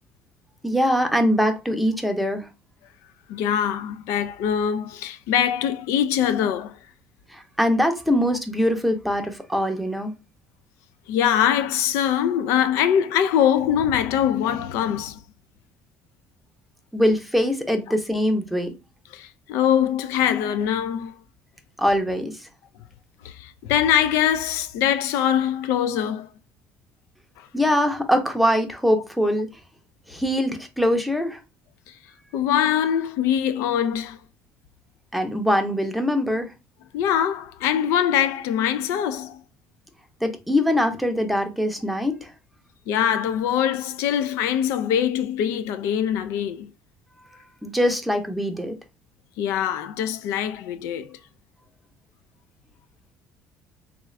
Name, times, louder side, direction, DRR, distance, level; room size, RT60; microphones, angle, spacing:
voice 1, 0.6-2.5 7.3-10.1 16.9-18.7 21.8-22.5 27.5-29.5 30.1-31.4 35.1-36.5 40.2-42.3 47.6-48.8, equal, ahead, 0.6 m, -22 dB
voice 2, 3.3-6.8 11.1-15.2 17.9-18.0 19.1-21.2 23.2-26.3 27.4-27.5 32.3-34.2 36.9-39.4 42.9-46.7 49.4-51.2, left 9 dB, 80° left, 0.3 m, -23 dB
3.5 x 2.4 x 3.2 m
cardioid pair, 125°, 5 cm